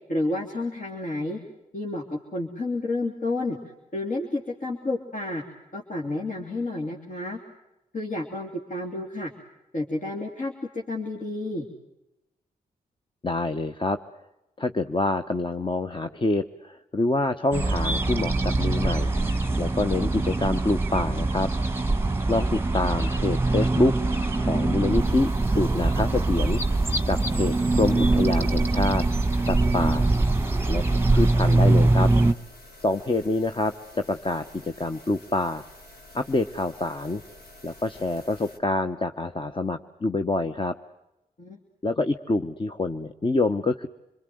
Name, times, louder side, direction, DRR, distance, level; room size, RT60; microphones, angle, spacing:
voice 1, 0.1-1.4 1.7-3.6 3.9-5.4 5.7-7.4 7.9-9.3 9.7-11.7 41.4-41.6, left 2 dB, 55° left, 0 dB, 3.1 m, -30 dB
voice 2, 13.2-14.0 14.6-19.1 19.6-21.5 22.3-26.6 27.1-29.0 29.4-30.1 30.7-32.1 32.8-35.6 36.1-37.2 37.6-40.8 41.8-43.9, left 2 dB, 30° left, 7 dB, 1.0 m, -26 dB
sound 1, 17.5-32.3, right 2 dB, 15° right, 1.2 m, -23 dB
sound 2, 24.9-38.6, left 1 dB, 85° left, 2.9 m, -49 dB
27.0 x 22.0 x 7.8 m, 0.94 s
cardioid pair, 55°, 16 cm